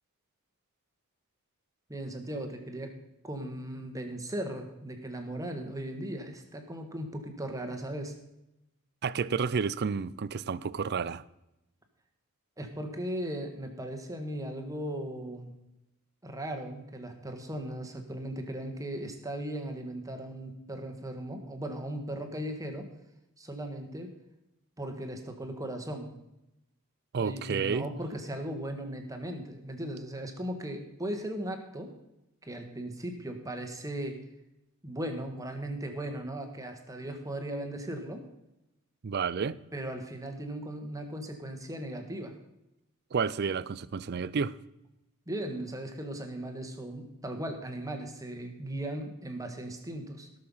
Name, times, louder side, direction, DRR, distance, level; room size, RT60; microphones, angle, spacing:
voice 1, 1.9-2.9 3.2-8.1 12.6-15.5 16.2-22.9 23.4-24.1 24.8-26.1 27.2-31.9 32.4-34.2 34.8-38.2 39.7-42.3 45.3-50.4, right 1 dB, 15° right, 1.6 m, -37 dB
voice 2, 9.0-11.2 27.1-27.9 39.0-39.6 43.1-44.5, right 5 dB, 45° right, 0.4 m, -30 dB
16.5 x 6.7 x 5.5 m
head